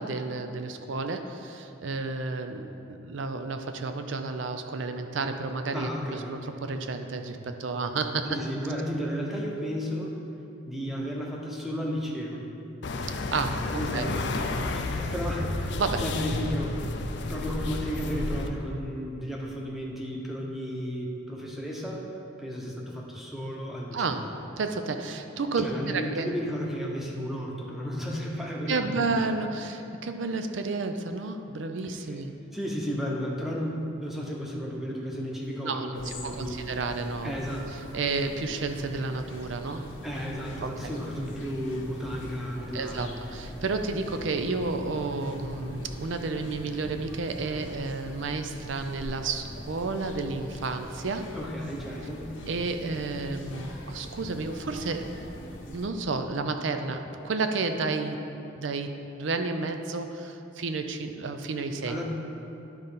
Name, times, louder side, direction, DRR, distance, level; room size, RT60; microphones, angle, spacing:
voice 1, 0.0-8.4 13.3-13.6 13.9-14.1 15.8-16.1 23.9-24.2 24.6-26.3 28.7-32.3 35.6-37.3 37.9-39.9 40.6-40.9 42.7-51.3 52.5-55.1 55.7-58.2 58.5-62.0, right 3 dB, 70° right, 7 dB, 0.5 m, -31 dB
voice 2, 5.7-6.3 8.3-10.1 10.6-12.4 13.7-16.9 17.3-22.1 22.4-24.2 25.6-29.1 32.5-36.6 37.2-37.9 40.0-43.1 51.3-52.3 61.8-62.0, equal, ahead, -2 dB, 0.9 m, -33 dB
sound 1, 12.8-18.5, left 3 dB, 60° left, 0.5 m, -31 dB
sound 2, 35.9-55.9, left 1 dB, 80° left, 1.0 m, -43 dB
10.5 x 3.9 x 5.6 m, 2.8 s
head